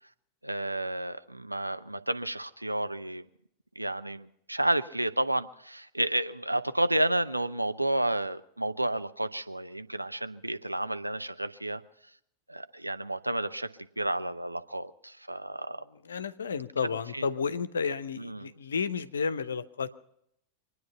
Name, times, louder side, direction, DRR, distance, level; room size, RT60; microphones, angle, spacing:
voice 1, 0.4-3.3 3.8-11.8 12.5-13.7 14.0-15.8 16.8-17.3 18.2-18.5, right 1 dB, 85° right, 10 dB, 0.7 m, -31 dB
voice 2, 16.0-19.9, left 5 dB, 70° left, 14 dB, 0.8 m, -32 dB
25.0 x 9.5 x 5.7 m, 0.75 s
figure-of-eight pair, 90°, 0 cm